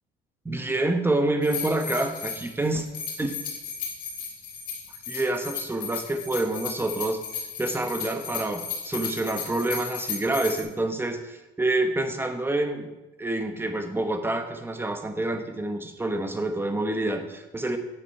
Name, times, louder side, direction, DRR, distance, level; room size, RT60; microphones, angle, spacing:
voice 1, 0.4-2.9 3.2-3.3 5.1-7.2 7.6-12.9 13.2-17.8, right 2 dB, 15° right, 6 dB, 1.1 m, -27 dB
sound 1, 1.4-10.6, left 6 dB, 55° left, 2.5 m, -35 dB
8.7 x 8.4 x 4.7 m, 1.0 s
cardioid pair, 110°, 17 cm